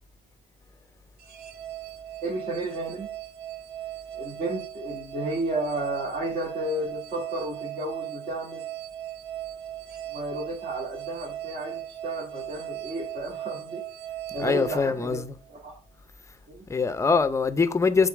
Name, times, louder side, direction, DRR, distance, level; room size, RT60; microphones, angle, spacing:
sound 1, 1.2-15.6, right 12 dB, 70° right, 0.9 m, -38 dB
voice 1, 2.2-3.1 4.1-8.6 10.1-13.8 14.3-15.2 15.5-15.8 16.5-16.6, right 1 dB, 50° right, 2.4 m, -32 dB
voice 2, 14.4-15.3 16.7-18.1, left 4 dB, 15° left, 0.6 m, -23 dB
7.1 x 3.9 x 3.6 m
cardioid pair, 110°, 17 cm